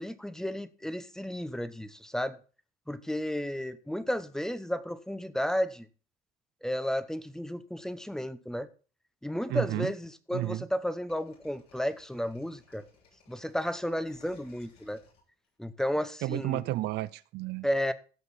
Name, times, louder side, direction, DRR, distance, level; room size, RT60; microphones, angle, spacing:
voice 1, 0.0-2.4 2.9-5.9 6.6-8.7 9.2-12.8 13.3-15.0 15.6-16.6 17.6-17.9, equal, 5° left, 0.9 m, -33 dB
voice 2, 9.5-9.9 10.3-10.7 16.2-17.7, right 17 dB, 80° right, 0.5 m, -32 dB
sound 1, 11.1-15.9, left 4 dB, 75° left, 7.2 m, -61 dB
16.0 x 6.5 x 4.2 m
cardioid pair, 110°, 17 cm